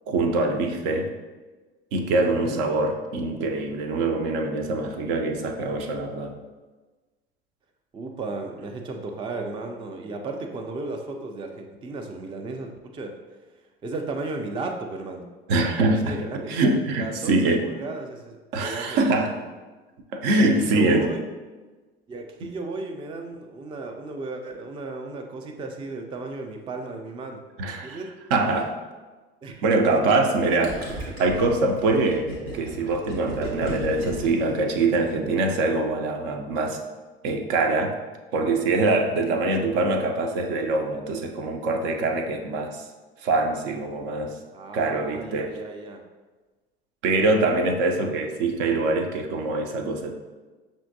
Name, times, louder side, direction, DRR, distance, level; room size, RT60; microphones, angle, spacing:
voice 1, 0.1-1.1 1.9-6.3 15.5-17.7 18.5-19.4 20.1-21.1 27.6-28.0 28.3-28.7 29.6-36.8 37.2-38.0 38.3-42.8 43.2-44.3 44.7-45.5 47.0-50.1, right 2 dB, 60° right, 4 dB, 0.6 m, -24 dB
voice 2, 2.3-2.6 7.9-13.4 13.8-15.2 15.7-16.7 17.0-19.3 20.3-21.2 22.1-27.4 27.8-28.2 29.4-30.8 44.5-46.0, right 3 dB, 15° right, 3 dB, 0.4 m, -34 dB
Gurgling, 30.6-35.3, right 1 dB, 85° right, 1.0 m, -35 dB
5.6 x 2.6 x 2.6 m, 1.3 s
figure-of-eight pair, 65°, 30 cm